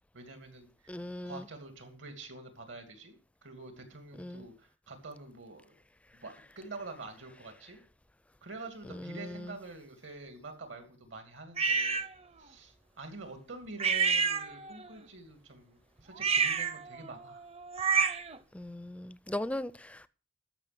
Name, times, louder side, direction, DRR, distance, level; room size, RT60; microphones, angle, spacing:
voice 1, 0.1-1.0 1.2-3.1 3.4-5.8 6.2-7.8 8.4-12.1 12.4-17.5, right 3 dB, 75° right, 2.6 m, -46 dB
voice 2, 0.9-1.5 4.2-4.5 8.8-9.6 18.5-20.1, left 1 dB, 5° left, 0.4 m, -39 dB
sound 1, 11.6-12.1 13.8-14.9 16.1-18.4, right 5 dB, 30° right, 0.6 m, -29 dB
13.5 x 6.0 x 6.0 m
head